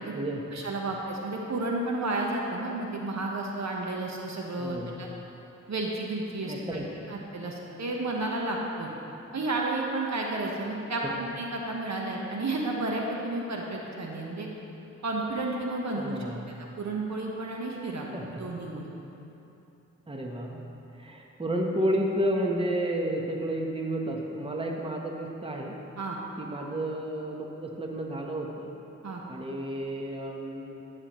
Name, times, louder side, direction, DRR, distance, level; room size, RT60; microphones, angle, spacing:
voice 1, 0.5-5.1 5.7-6.8 7.1-8.9 9.3-11.0 11.4-14.5 15.0-16.2 16.8-18.8 26.0-26.2 29.0-29.2, right 2 dB, 60° right, -1 dB, 1.2 m, -32 dB
voice 2, 4.6-4.9 6.5-7.1 15.9-16.4 18.1-18.5 20.1-20.7 21.0-25.8 26.4-28.7 29.3-30.8, right 1 dB, 15° right, 0 dB, 1.0 m, -31 dB
13.0 x 6.5 x 3.1 m, 3.0 s
cardioid pair, 50°, 31 cm